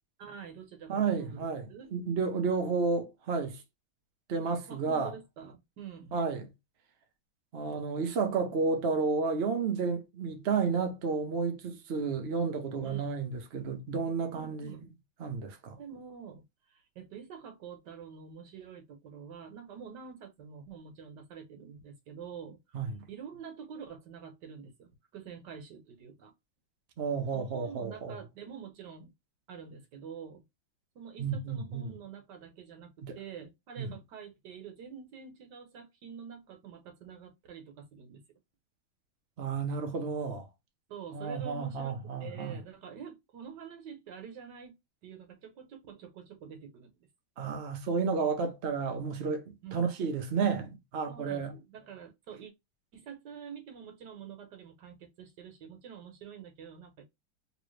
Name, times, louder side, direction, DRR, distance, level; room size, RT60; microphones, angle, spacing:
voice 1, 0.2-1.9 4.7-6.1 12.8-13.1 14.3-14.9 15.8-22.6 23.1-26.3 27.3-29.1 29.5-30.4 30.9-38.2 40.9-44.8 45.0-46.9 49.6-49.9 51.1-52.5 52.9-57.1, right 7 dB, 60° right, 1.5 m, -47 dB
voice 2, 0.9-3.6 4.3-5.1 6.1-6.5 7.5-14.8 15.2-15.8 22.7-23.0 27.0-28.1 31.2-31.9 33.0-33.2 33.8-33.9 39.4-40.5 41.1-42.6 47.4-51.5, right 5 dB, 75° right, 0.5 m, -31 dB
3.1 x 3.1 x 3.1 m
omnidirectional pair, 2.3 m